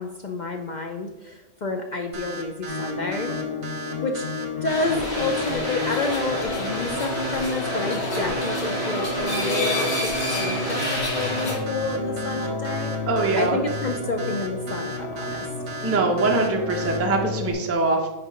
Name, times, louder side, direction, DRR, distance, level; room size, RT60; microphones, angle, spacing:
voice 1, 0.0-3.3 4.0-4.2 4.6-13.1 13.4-15.4, left 2 dB, 65° left, 4 dB, 0.4 m, -29 dB
sound 1, 2.1-17.0, right 2 dB, 55° right, 1.3 m, -36 dB
sound 2, 2.7-17.5, left 2 dB, 30° left, 2.7 m, -31 dB
sound 3, 4.7-11.6, left 2 dB, 50° left, 1.9 m, -28 dB
voice 2, 13.1-13.6 15.8-18.1, right 3 dB, 15° right, 1 dB, 0.7 m, -22 dB
6.4 x 4.7 x 5.1 m, 1.1 s
omnidirectional pair, 1.4 m